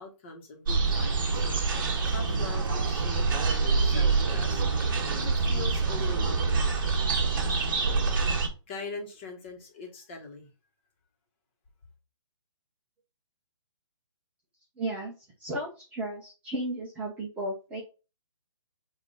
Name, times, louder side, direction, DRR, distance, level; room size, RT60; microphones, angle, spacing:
voice 1, 0.0-1.5 2.1-3.3 3.8-4.6 5.1-6.7 8.7-10.5, left 3 dB, 25° left, 1.6 m, -42 dB
sound 1, 0.7-8.5, right 4 dB, 40° right, 1.7 m, -26 dB
voice 2, 14.8-15.1 15.4-17.8, right 1 dB, 10° right, 0.9 m, -34 dB
8.9 x 3.0 x 4.0 m
hypercardioid pair, 170°, 16 cm